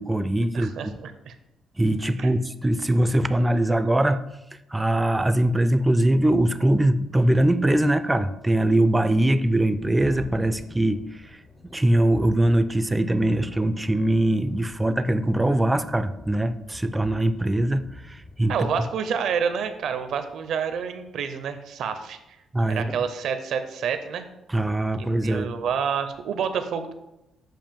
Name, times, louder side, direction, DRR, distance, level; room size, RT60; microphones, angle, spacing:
voice 1, 0.0-0.9 1.8-4.3 4.7-11.0 11.6-18.5 22.5-22.9 24.5-25.5, right 1 dB, 15° right, 12 dB, 0.4 m, -22 dB
voice 2, 0.5-1.3 2.2-2.3 18.5-22.4 22.7-24.3 25.0-26.9, right 7 dB, 75° right, 9 dB, 0.6 m, -28 dB
Thunderstorm, 7.0-7.1 7.4-21.0, left 2 dB, 45° left, 0.8 m, -47 dB
7.5 x 2.5 x 5.2 m, 0.92 s
cardioid pair, 90°, 0 cm